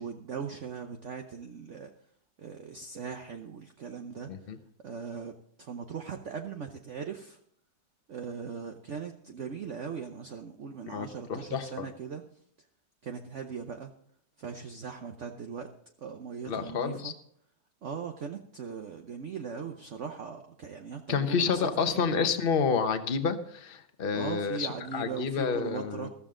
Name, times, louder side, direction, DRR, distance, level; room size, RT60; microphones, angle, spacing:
voice 1, 0.0-1.9 2.4-4.3 4.8-7.4 8.1-12.2 13.0-13.9 14.4-15.7 16.0-17.1 17.8-22.0 24.1-26.1, right 6 dB, 55° right, 4 dB, 1.0 m, -39 dB
voice 2, 4.3-4.6 10.9-11.9 16.5-17.1 21.1-26.1, left 6 dB, 40° left, 8 dB, 1.0 m, -29 dB
14.5 x 14.0 x 3.8 m, 0.66 s
omnidirectional pair, 1.9 m